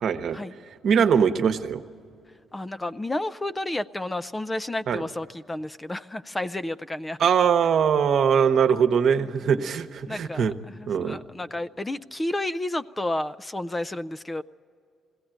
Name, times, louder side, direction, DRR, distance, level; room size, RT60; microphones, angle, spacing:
voice 1, 0.0-0.4 0.8-1.8 4.9-5.0 7.2-10.5 10.9-11.2, right 7 dB, 65° right, 8 dB, 1.0 m, -22 dB
voice 2, 2.5-7.2 10.1-14.4, left 1 dB, 15° left, 13 dB, 0.4 m, -31 dB
20.5 x 16.5 x 9.0 m, 2.4 s
cardioid pair, 90°, 0 cm